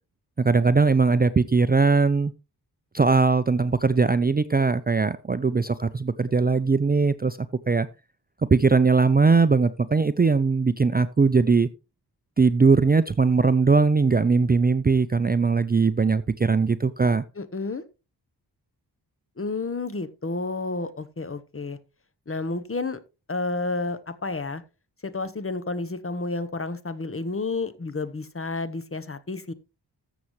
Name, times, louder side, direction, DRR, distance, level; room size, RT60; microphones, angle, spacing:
voice 1, 0.4-2.3 2.9-7.4 7.7-7.9 8.5-11.7 12.4-17.2, right 4 dB, 25° right, 0.5 m, -20 dB
voice 2, 17.4-17.8 19.4-21.8 22.3-23.0 23.3-24.6 25.0-29.5, left 3 dB, 30° left, 1.0 m, -30 dB
14.0 x 7.1 x 3.1 m
cardioid pair, 50°, 42 cm